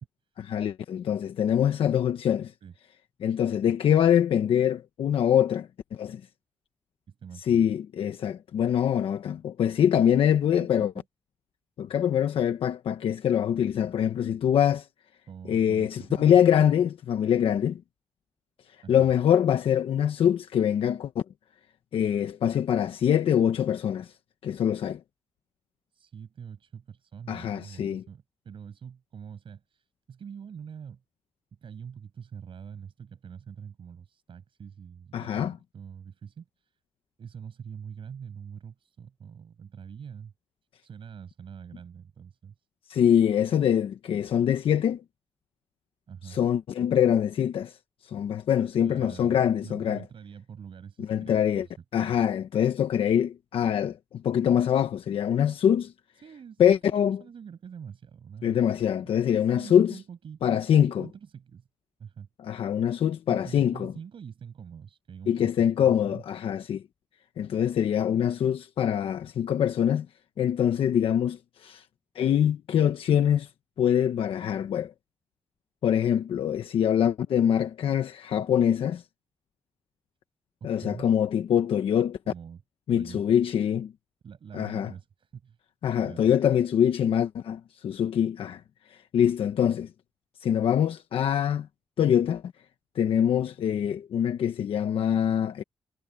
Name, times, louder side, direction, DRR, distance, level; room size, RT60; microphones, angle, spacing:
voice 1, 0.4-2.5 3.2-6.2 7.4-10.9 11.8-14.9 15.5-17.8 18.9-21.2 21.9-24.1 24.4-25.0 27.3-28.0 35.1-35.6 42.9-45.0 46.2-47.8 48.0-50.0 51.0-51.7 51.9-55.9 56.6-57.2 58.4-60.0 60.4-61.1 62.4-63.9 65.3-66.8 67.4-70.1 70.4-71.8 72.1-73.5 73.8-74.9 75.8-79.0 80.6-82.2 82.9-83.9 84.5-84.9 85.8-88.6 88.9-89.9 90.4-91.7 92.0-92.4 92.9-95.6, left 9 dB, 85° left, 1.1 m, -24 dB
voice 2, 7.1-7.6 10.0-10.2 10.6-11.0 15.3-16.4 18.8-19.1 25.9-31.0 31.6-36.8 37.2-40.3 40.8-42.5 46.1-46.4 48.8-52.2 56.2-58.8 59.3-61.7 62.0-62.3 63.3-66.2 80.8-81.1 82.3-82.6 82.9-83.5 84.2-85.6 86.0-86.3, right 7 dB, 70° right, 6.9 m, -44 dB
cardioid pair, 55°, 9 cm